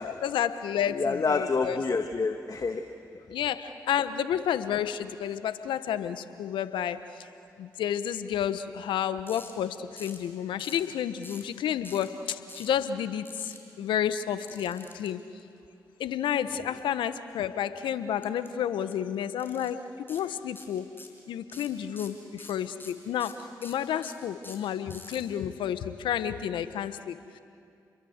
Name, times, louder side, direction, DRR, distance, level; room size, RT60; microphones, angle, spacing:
voice 1, 0.0-1.8 3.3-7.3 7.6-15.2 16.0-20.9 21.3-23.3 23.6-27.4, left 9 dB, 80° left, 12 dB, 1.1 m, -31 dB
voice 2, 0.9-2.9 16.6-16.7, left 4 dB, 45° left, 6 dB, 1.6 m, -28 dB
sound 1, 9.3-9.5 10.0-10.3 10.6-10.9 11.2-11.5 11.8-12.1 12.5-12.7 13.3-13.6 14.5-15.1 18.2-18.5 18.8-18.9 19.4-19.7 20.1-20.2 20.6-21.2 21.5-25.2, left 2 dB, 25° left, 6.2 m, -46 dB
29.5 x 22.5 x 8.1 m, 2.4 s
hypercardioid pair, 40°, 8 cm